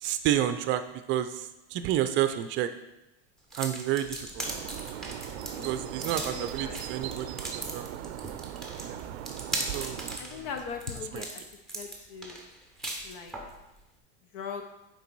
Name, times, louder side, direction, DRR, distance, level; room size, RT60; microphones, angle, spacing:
voice 1, 0.0-0.8 1.1-2.7 3.5-4.5 5.6-7.9 8.8-9.0 9.7-10.5 11.1-11.3, right 12 dB, 35° right, 10 dB, 0.5 m, -30 dB
sound 1, 3.5-13.5, right 1 dB, ahead, 0.9 m, -38 dB
sound 2, 4.0-11.2, left 2 dB, 35° left, 1.5 m, -51 dB
sound 3, 4.4-10.2, right 13 dB, 85° right, 0.5 m, -39 dB
voice 2, 5.5-6.8 10.2-11.4 11.7-12.4 13.0-13.3 14.3-14.6, left 6 dB, 55° left, 5 dB, 0.8 m, -40 dB
6.8 x 4.6 x 4.6 m, 0.95 s
supercardioid pair, 145°, 32 cm